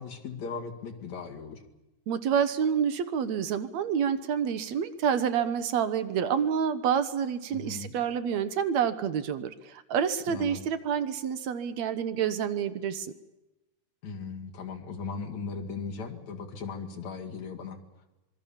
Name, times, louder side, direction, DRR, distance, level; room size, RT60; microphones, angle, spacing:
voice 1, 0.0-1.6 7.5-7.9 10.3-10.6 14.0-17.8, left 5 dB, 65° left, 3 dB, 3.6 m, -38 dB
voice 2, 2.1-13.1, right 8 dB, 70° right, 11 dB, 2.2 m, -28 dB
26.0 x 22.0 x 7.3 m, 0.98 s
omnidirectional pair, 3.5 m